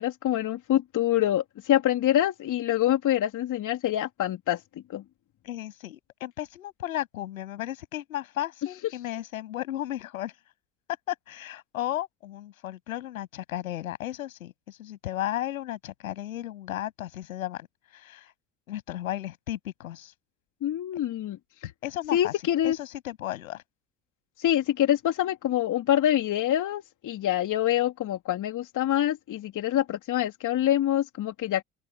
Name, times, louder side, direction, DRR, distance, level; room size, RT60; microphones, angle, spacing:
voice 1, 0.0-4.6 4.9-5.0 20.6-21.4 21.6-21.7 22.1-22.8 24.4-31.6, left 12 dB, 45° left, 3.2 m, -25 dB
voice 2, 5.4-10.3 11.1-17.7 17.9-18.3 18.7-20.1 21.8-22.3 22.6-23.6, left 13 dB, 75° left, 7.8 m, -34 dB
figure-of-eight pair, 65°, 41 cm